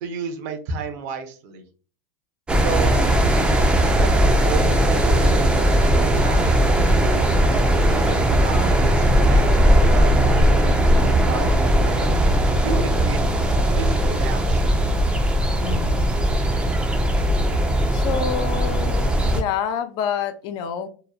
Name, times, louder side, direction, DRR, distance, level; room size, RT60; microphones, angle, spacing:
voice 1, 0.0-1.6 2.6-3.0 4.0-7.3 7.9-12.2 12.6-13.3 13.8-14.8, right 5 dB, 65° right, 0.7 m, -33 dB
sound 1, 2.5-19.4, right 1 dB, 10° right, 0.4 m, -18 dB
voice 2, 15.6-16.1 17.9-20.9, left 8 dB, 50° left, 0.4 m, -28 dB
2.8 x 2.1 x 2.3 m
supercardioid pair, 115°, 10 cm